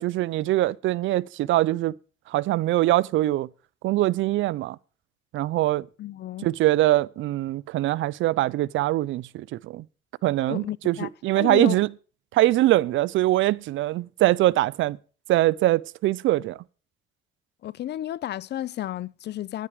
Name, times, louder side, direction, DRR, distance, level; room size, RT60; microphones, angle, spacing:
voice 1, 0.0-1.9 2.3-3.5 3.8-4.8 5.3-5.9 6.4-9.9 10.2-11.9 12.3-15.0 15.3-16.6, right 16 dB, 75° right, 0.4 m, -23 dB
voice 2, 6.0-6.5 10.5-11.1 11.4-11.8 17.6-19.7, left 12 dB, 60° left, 0.5 m, -32 dB
10.0 x 9.9 x 4.9 m
cardioid pair, 90°, 20 cm